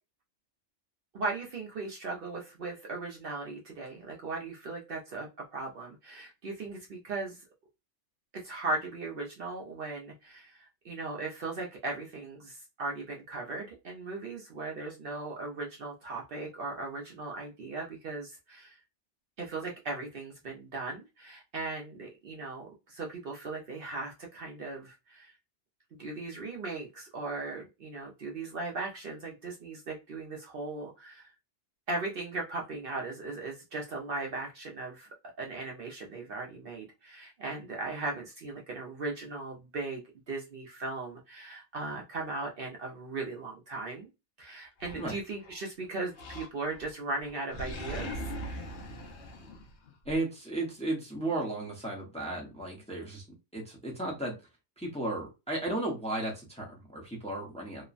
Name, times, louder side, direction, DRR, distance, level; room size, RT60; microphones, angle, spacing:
voice 1, 1.1-7.4 8.3-18.8 19.4-25.3 26.0-31.3 31.9-40.0 40.3-44.1 44.4-48.3, right 3 dB, 60° right, 0 dB, 0.7 m, -38 dB
Animal, 44.8-45.6 46.1-46.9 47.2-50.2, equal, 70° left, 0.9 m, -41 dB
voice 2, 50.0-53.2 53.5-54.3 54.8-57.8, right 2 dB, 5° left, -2 dB, 0.7 m, -34 dB
2.9 x 2.1 x 2.4 m, 0.26 s
omnidirectional pair, 1.2 m